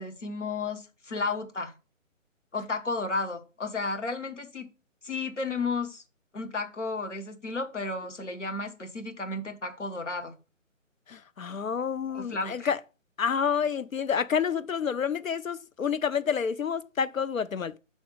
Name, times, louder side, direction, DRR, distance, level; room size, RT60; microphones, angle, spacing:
voice 1, 0.0-1.7 2.5-4.7 5.0-6.0 6.3-10.3 12.1-12.7, left 3 dB, 65° left, 1.3 m, -33 dB
voice 2, 11.1-12.8 13.2-17.8, left 7 dB, 90° left, 0.5 m, -29 dB
6.3 x 3.5 x 5.4 m
figure-of-eight pair, 145°, 39 cm